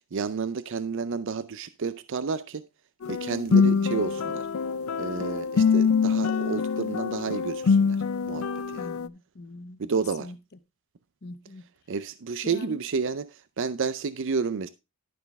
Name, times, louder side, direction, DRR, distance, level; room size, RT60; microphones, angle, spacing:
voice 1, 0.1-2.7 3.1-4.5 5.0-8.0 8.3-8.9 9.8-10.3 11.9-14.7, right 5 dB, 60° right, 0.5 m, -31 dB
sound 1, 3.0-9.1, left 5 dB, 70° left, 0.4 m, -24 dB
voice 2, 3.6-3.9 8.8-9.8 10.2-10.4 11.2-11.6 12.4-12.8, left 2 dB, 45° left, 0.8 m, -42 dB
12.0 x 6.2 x 3.4 m
head